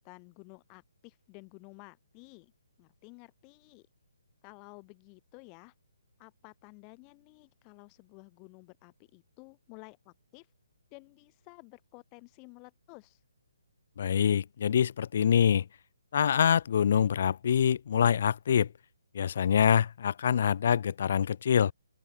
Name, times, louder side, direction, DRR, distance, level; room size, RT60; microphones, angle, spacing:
voice 1, 0.0-2.5 2.8-3.9 4.4-5.7 6.2-10.5 10.9-13.2, left 36 dB, 25° left, 3.6 m, -53 dB
voice 2, 14.0-15.6 16.1-18.7 19.1-21.7, left 8 dB, 50° left, 0.7 m, -25 dB
open air
figure-of-eight pair, 145°, 0 cm